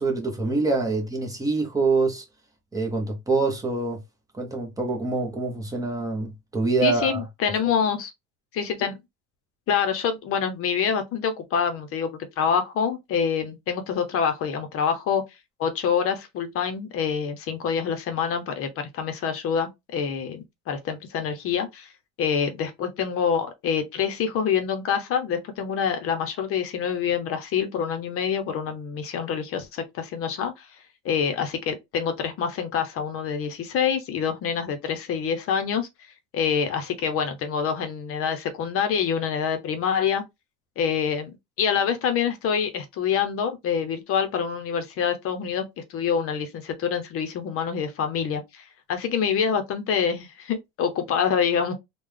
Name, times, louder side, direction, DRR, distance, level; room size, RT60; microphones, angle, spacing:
voice 1, 0.0-2.2 2.7-4.0 4.3-7.2, right 3 dB, 10° right, 0.9 m, -25 dB
voice 2, 6.8-8.1 8.5-9.0 9.7-15.2 15.6-21.9 22.2-30.7 31.0-35.9 36.3-40.2 40.8-41.3 41.6-45.6 45.9-51.7, left 7 dB, 45° left, 0.8 m, -26 dB
3.7 x 2.3 x 3.2 m
cardioid pair, 150°, 30 cm